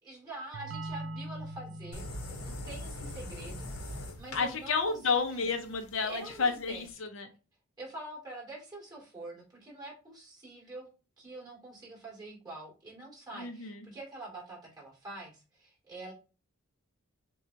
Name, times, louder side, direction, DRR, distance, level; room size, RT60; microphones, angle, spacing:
voice 1, 0.0-5.0 5.3-5.5 6.0-6.9 7.8-10.9 11.2-16.1, right 2 dB, 15° right, -4 dB, 2.6 m, -46 dB
sound 1, 0.5-6.0, right 1 dB, 65° right, 0.5 m, -45 dB
sound 2, 1.9-6.9, left 1 dB, 90° left, 1.0 m, -42 dB
voice 2, 4.3-7.3 13.4-13.8, left 5 dB, 60° left, 6 dB, 0.6 m, -31 dB
6.7 x 2.3 x 2.8 m, 0.33 s
head